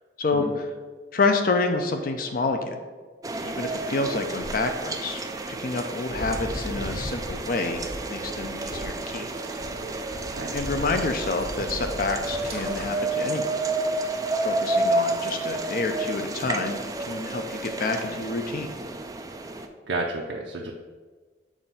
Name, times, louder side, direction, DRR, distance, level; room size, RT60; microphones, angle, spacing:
voice 1, 0.2-0.7 1.1-2.8 3.4-5.2 5.5-9.3 10.5-13.6 14.4-18.7, left 3 dB, 50° left, 5 dB, 0.5 m, -28 dB
sound 1, 3.2-19.7, right 2 dB, 20° right, 0.4 m, -30 dB
sound 2, 6.1-12.9, equal, 55° right, 1.4 m, -37 dB
voice 2, 19.9-20.7, right 2 dB, 85° right, 0 dB, 0.5 m, -31 dB
7.1 x 2.6 x 5.5 m, 1.4 s
head